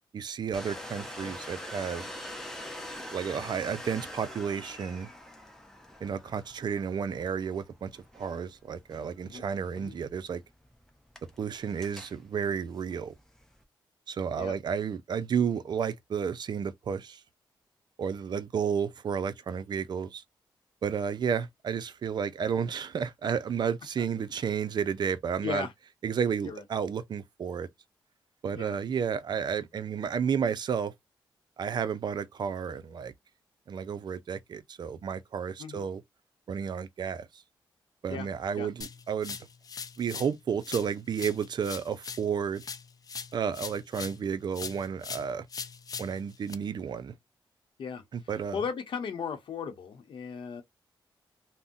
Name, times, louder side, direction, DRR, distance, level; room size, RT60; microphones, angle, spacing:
voice 1, 0.1-2.1 3.1-5.1 6.0-10.4 11.4-13.1 14.1-17.2 18.0-20.2 20.8-25.7 26.0-27.7 28.4-30.9 31.6-33.1 33.7-36.0 36.5-37.4 38.0-39.4 40.0-42.6 43.3-45.5 46.0-47.2 48.1-48.6, right 7 dB, 55° right, 0.4 m, -32 dB
Domestic sounds home sounds, 0.5-13.6, left 1 dB, 5° left, 0.7 m, -45 dB
sound 1, 38.8-40.4 40.6-44.3 44.5-46.5, left 5 dB, 45° left, 0.4 m, -41 dB
voice 2, 48.5-50.6, left 6 dB, 75° left, 0.8 m, -36 dB
2.6 x 2.1 x 3.6 m
cardioid pair, 85°, 9 cm